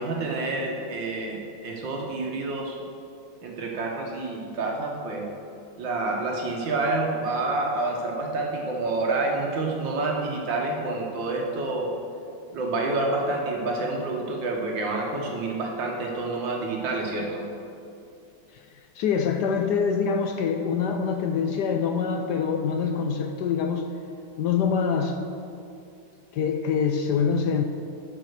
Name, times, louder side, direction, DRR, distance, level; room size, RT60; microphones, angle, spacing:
voice 1, 0.0-2.8 3.4-5.3 5.8-11.9 12.5-17.5, right 2 dB, 65° right, 0 dB, 1.7 m, -28 dB
voice 2, 19.0-23.8 24.4-25.2 26.3-27.6, left 6 dB, 75° left, 5 dB, 1.0 m, -25 dB
11.0 x 5.3 x 6.5 m, 2.5 s
omnidirectional pair, 2.3 m